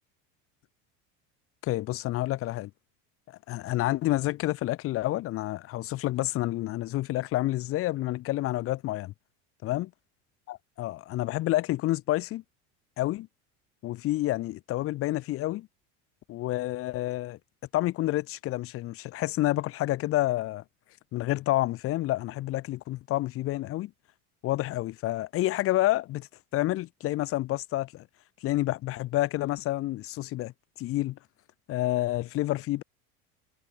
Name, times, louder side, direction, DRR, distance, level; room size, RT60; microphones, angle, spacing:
voice 1, 1.6-2.7 3.5-9.1 9.6-9.9 10.5-12.4 13.0-13.3 13.8-15.7 16.3-17.4 17.7-20.6 21.1-23.9 24.4-28.0 28.4-30.5 30.8-31.2 31.7-32.8, left 16 dB, 40° left, 1.2 m, -29 dB
cardioid pair, 155°, 34 cm